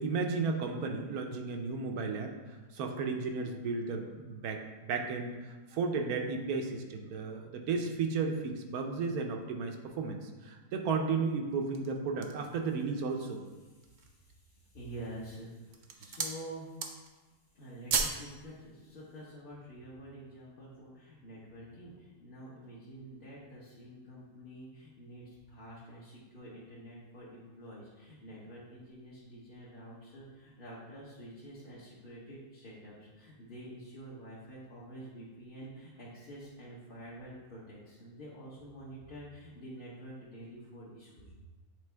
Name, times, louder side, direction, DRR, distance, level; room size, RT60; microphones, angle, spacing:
voice 1, 0.0-4.6 4.9-13.4, right 4 dB, 85° right, 4 dB, 1.2 m, -34 dB
sound 1, 11.5-12.5 13.1-13.2 13.7-14.2 14.9-15.3 15.6-16.4 16.7-17.2 17.5-18.3 18.6-18.7, right 5 dB, 70° right, 0.4 m, -35 dB
voice 2, 13.6-16.7 17.5-41.3, right 1 dB, 40° left, -8 dB, 1.1 m, -48 dB
8.4 x 3.7 x 3.4 m, 1.2 s
omnidirectional pair, 1.5 m